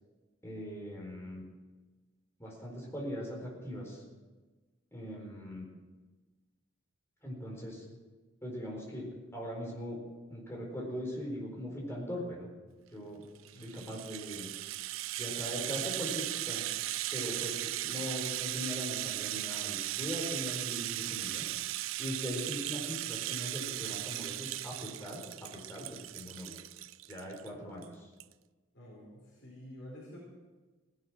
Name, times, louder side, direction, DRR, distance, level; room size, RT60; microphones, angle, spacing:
voice 1, 0.4-1.4 2.4-4.0 4.9-5.7 7.2-7.8 8.4-9.1 9.3-10.0 10.3-12.5 12.9-13.2 13.6-14.5 15.2-16.7 17.1-21.5 22.0-25.2 25.5-26.6 27.1-28.1, equal, 15° left, -2 dB, 4.3 m, -40 dB
Rattle (instrument), 13.4-27.5 27.8-27.9 28.2-28.3, right 15 dB, 85° right, 0.4 m, -37 dB
voice 2, 13.5-14.0 28.7-30.2, equal, 55° left, -6 dB, 4.8 m, -49 dB
18.0 x 11.0 x 6.1 m, 1.3 s
head